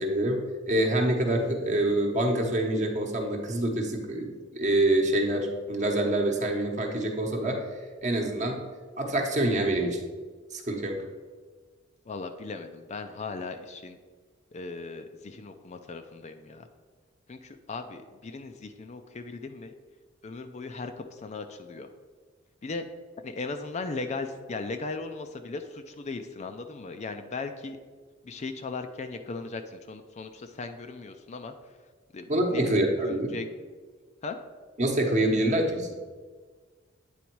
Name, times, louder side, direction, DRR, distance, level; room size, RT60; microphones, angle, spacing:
voice 1, 0.0-7.6 8.0-8.6 9.0-10.0 10.5-11.1 32.3-33.3 34.8-35.9, right 1 dB, 35° right, 2 dB, 1.0 m, -26 dB
voice 2, 12.1-14.0 14.5-16.7 17.3-19.7 20.2-21.9 22.6-22.8 23.2-27.8 28.2-31.5 32.1-33.5 34.2-34.4, left 3 dB, 35° left, 7 dB, 0.4 m, -37 dB
8.6 x 4.0 x 4.6 m, 1.4 s
head